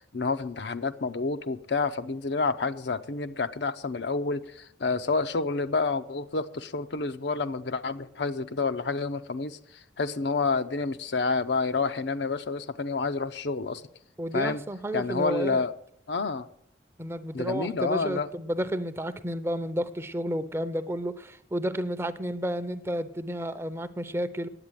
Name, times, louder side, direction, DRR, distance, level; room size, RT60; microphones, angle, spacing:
voice 1, 0.0-9.6 10.0-13.8 14.3-14.6 14.9-15.7 16.1-16.5 17.3-18.3, left 4 dB, 65° left, 0.7 m, -29 dB
voice 2, 14.2-15.6 17.0-24.5, equal, 15° right, 0.6 m, -31 dB
9.9 x 8.4 x 9.0 m
head